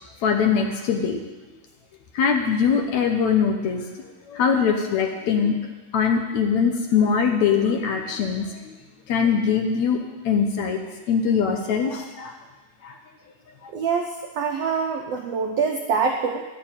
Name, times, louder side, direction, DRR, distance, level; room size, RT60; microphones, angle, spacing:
voice 1, 0.2-1.2 2.1-3.9 4.3-5.6 5.9-8.7 9.1-10.0 10.3-10.8 11.1-12.4 12.8-13.0, left 6 dB, 70° left, 4 dB, 1.9 m, -22 dB
voice 2, 13.7-16.4, right 5 dB, 90° right, 3 dB, 1.4 m, -25 dB
12.0 x 6.8 x 8.8 m, 1.2 s
omnidirectional pair, 3.9 m